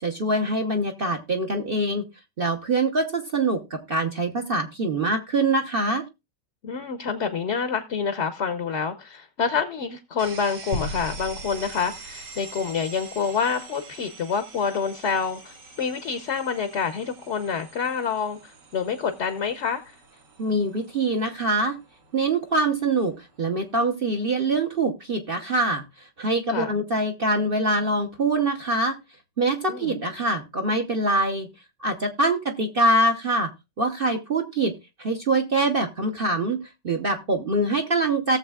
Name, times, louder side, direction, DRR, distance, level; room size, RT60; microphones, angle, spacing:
voice 1, 0.0-2.0 2.4-6.0 20.4-21.8 22.1-29.0 29.4-31.5 31.8-33.5 33.8-34.7 35.0-38.4, right 2 dB, 40° right, 3 dB, 0.9 m, -24 dB
voice 2, 6.6-19.8 26.5-26.7 29.7-29.9, left 6 dB, 50° left, 8 dB, 0.9 m, -27 dB
sound 1, 10.2-23.9, right 4 dB, 75° right, 2.4 m, -46 dB
sound 2, 10.7-13.3, left 1 dB, 85° left, 2.1 m, -36 dB
17.5 x 7.2 x 2.3 m, 0.24 s
omnidirectional pair, 1.9 m